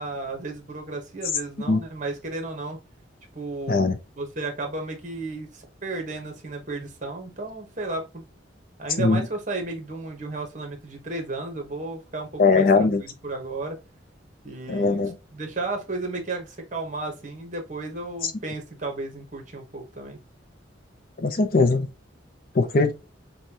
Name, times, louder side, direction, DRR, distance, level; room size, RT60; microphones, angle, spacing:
voice 1, 0.0-2.8 3.3-8.2 8.8-13.8 14.4-15.0 15.3-20.2, right 3 dB, 40° right, 1.1 m, -33 dB
voice 2, 12.4-13.0 14.7-15.1 21.2-21.9 22.5-22.9, left 3 dB, 50° left, 0.5 m, -20 dB
5.3 x 2.3 x 2.9 m
head